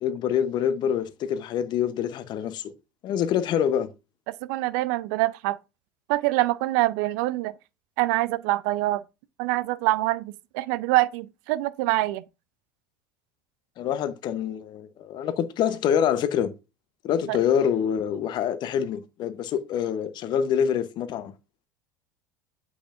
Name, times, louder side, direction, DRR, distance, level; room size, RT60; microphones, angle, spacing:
voice 1, 0.0-2.7 3.0-3.9 13.8-16.5 17.0-21.3, left 8 dB, 45° left, 0.8 m, -26 dB
voice 2, 4.3-5.6 6.1-7.5 8.0-9.0 9.4-12.2 17.3-17.4, right 18 dB, 60° right, 0.5 m, -25 dB
8.2 x 5.8 x 2.5 m
figure-of-eight pair, 75°, 11 cm